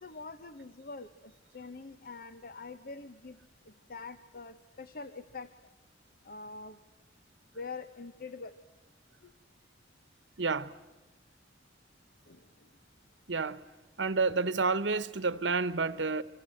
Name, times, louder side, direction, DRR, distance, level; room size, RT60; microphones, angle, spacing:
voice 1, 0.0-3.4 3.9-5.5 6.2-6.8 7.5-8.6 12.3-12.4, left 4 dB, 55° left, 1.0 m, -44 dB
voice 2, 10.4-10.7 13.3-13.6 14.0-16.2, right 4 dB, 90° right, 1.1 m, -29 dB
29.0 x 26.0 x 7.8 m
head